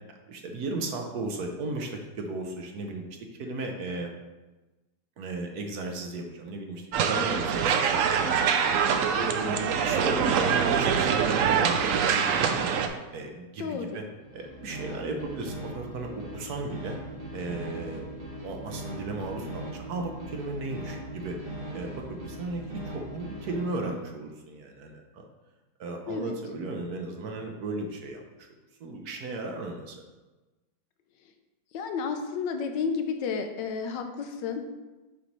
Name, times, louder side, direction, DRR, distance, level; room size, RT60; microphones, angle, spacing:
voice 1, 0.2-3.0 3.4-4.1 5.2-8.3 8.8-12.7 13.1-14.0 14.3-17.0 17.3-21.4 21.7-25.3 25.8-28.5 28.8-30.0, right 2 dB, 65° right, 3 dB, 1.2 m, -35 dB
sound 1, 6.9-12.9, right 7 dB, 80° right, 0.7 m, -24 dB
voice 2, 13.6-14.0 26.1-26.4 31.7-34.7, left 5 dB, 80° left, 6 dB, 1.3 m, -31 dB
sound 2, 14.2-23.8, right 1 dB, 25° right, 0.9 m, -40 dB
6.9 x 3.2 x 5.2 m, 1.1 s
omnidirectional pair, 1.9 m